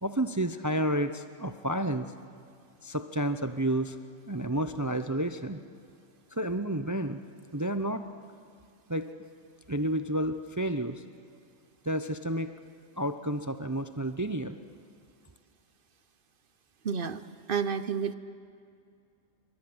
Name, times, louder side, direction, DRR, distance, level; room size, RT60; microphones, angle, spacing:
voice 1, 0.0-2.1 2.8-4.0 4.3-5.6 6.3-7.2 7.5-8.0 8.9-9.1 9.7-11.0 11.8-12.5 13.0-14.6, right 1 dB, 20° right, 9 dB, 0.6 m, -30 dB
voice 2, 16.8-17.2 17.5-18.1, right 6 dB, 45° right, 13 dB, 1.0 m, -30 dB
27.5 x 24.0 x 7.9 m, 2.4 s
omnidirectional pair, 1.3 m